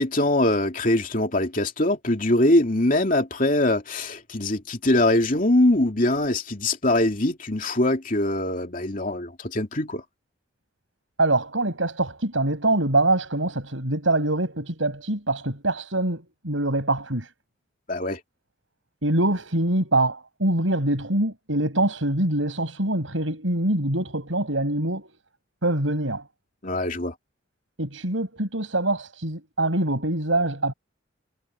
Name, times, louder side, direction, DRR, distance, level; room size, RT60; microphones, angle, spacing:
voice 1, 0.0-10.0 17.9-18.2 26.6-27.1, left 1 dB, 45° left, 2.8 m, -22 dB
voice 2, 11.2-17.3 19.0-25.1 25.6-26.2 27.8-30.7, right 2 dB, 90° right, 7.4 m, -24 dB
head